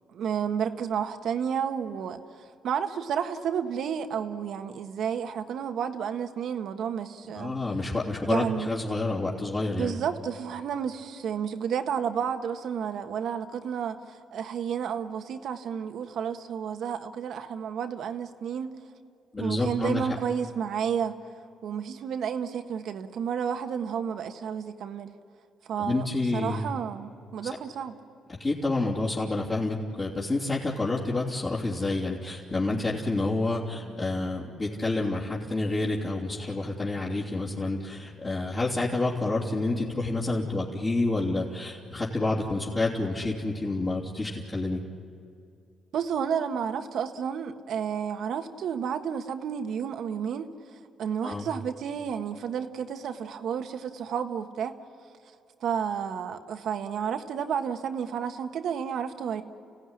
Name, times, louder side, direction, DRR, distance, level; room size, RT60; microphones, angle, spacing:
voice 1, 0.1-7.5 8.2-8.8 9.8-18.8 19.4-21.2 21.6-25.1 25.6-27.9 45.9-50.5 51.0-54.8 55.6-59.4, right 7 dB, 70° right, 7 dB, 1.4 m, -31 dB
voice 2, 7.3-10.0 19.3-20.1 25.8-26.6 28.3-44.8 51.2-51.5, left 2 dB, 30° left, -7 dB, 3.3 m, -29 dB
29.5 x 16.5 x 9.9 m, 2.6 s
cardioid pair, 90°, 0 cm